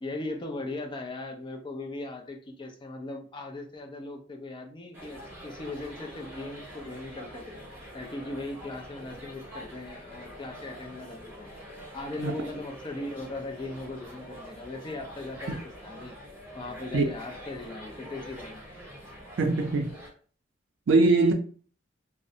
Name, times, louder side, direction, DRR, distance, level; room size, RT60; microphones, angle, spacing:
voice 1, 0.0-7.6 7.9-11.5 11.9-15.6 15.8-16.2 16.5-18.6, left 2 dB, 25° left, 0.4 m, -38 dB
sound 1, 4.9-20.1, equal, 10° right, 0.9 m, -45 dB
voice 2, 19.4-19.9 20.9-21.3, right 3 dB, 70° right, 0.4 m, -22 dB
2.4 x 2.0 x 2.6 m
head